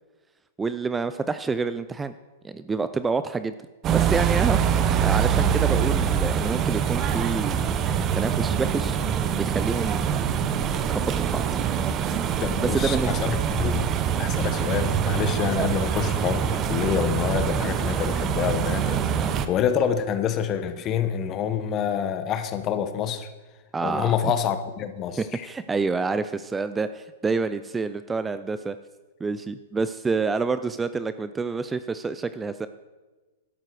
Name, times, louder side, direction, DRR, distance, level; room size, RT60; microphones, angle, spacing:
voice 1, 0.6-2.1 2.4-3.5 3.9-4.6 5.0-9.0 9.4-10.1 10.9-11.5 12.6-13.2 23.7-24.3 25.2-28.8 29.2-32.7, right 4 dB, 15° right, 12 dB, 0.4 m, -28 dB
sound 1, 3.8-19.5, right 8 dB, 30° right, 0.8 m, -24 dB
voice 2, 12.4-13.9 14.2-23.3 23.8-25.5, left 8 dB, 30° left, 10 dB, 1.1 m, -27 dB
12.5 x 11.5 x 4.8 m, 1.2 s
hypercardioid pair, 120°, 0 cm